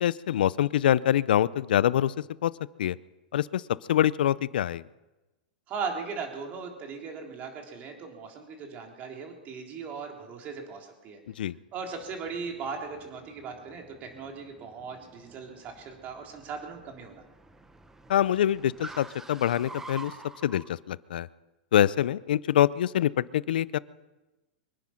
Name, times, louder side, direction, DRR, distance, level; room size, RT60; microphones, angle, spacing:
voice 1, 0.0-2.1 2.4-2.5 2.8-3.0 3.3-3.6 3.9-4.8 11.4-11.6 18.1-20.1 20.4-21.3 21.7-23.8, left 11 dB, 75° left, 20 dB, 0.5 m, -25 dB
voice 2, 5.7-11.2 11.7-17.2, right 5 dB, 35° right, 2 dB, 3.5 m, -38 dB
Car, 11.8-20.7, right 3 dB, 10° right, 0.9 m, -49 dB
24.5 x 10.0 x 5.9 m, 1.1 s
hypercardioid pair, 130°, 5 cm